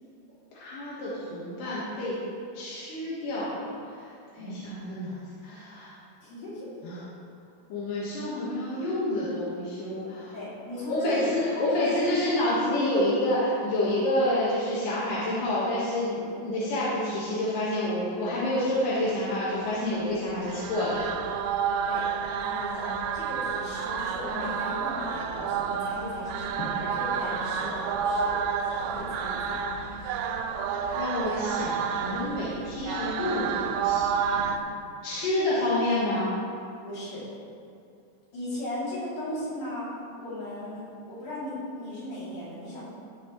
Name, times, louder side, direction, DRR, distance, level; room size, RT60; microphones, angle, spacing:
voice 1, 0.5-2.2 2.5-3.7 4.4-5.1 5.4-5.9 6.8-7.0 7.7-10.3 10.9-21.1 30.9-34.4 35.0-36.3, left 1 dB, 65° left, -8 dB, 2.3 m, -28 dB
voice 2, 6.2-6.8 7.1-7.2 10.3-11.3 11.6-12.0 21.9-28.3 28.9-29.6 34.3-34.5 36.8-37.2 38.3-42.8, left 1 dB, 50° left, -9 dB, 3.7 m, -37 dB
sound 1, 20.3-34.6, right 6 dB, 90° right, 2.4 m, -30 dB
14.0 x 7.2 x 3.1 m, 2.5 s
omnidirectional pair, 5.4 m